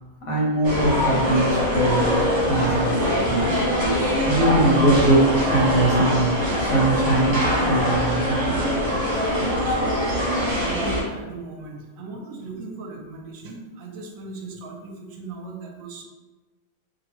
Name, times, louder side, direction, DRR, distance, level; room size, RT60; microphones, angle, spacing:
voice 1, 0.3-2.9 3.2-3.5 4.2-8.6, right 1 dB, 70° left, -5 dB, 1.5 m, -21 dB
sound 1, 0.6-11.0, equal, 35° right, 1.0 m, -23 dB
voice 2, 9.6-16.0, right 3 dB, 75° right, 1 dB, 1.0 m, -37 dB
3.0 x 2.6 x 3.0 m, 1.2 s
omnidirectional pair, 1.6 m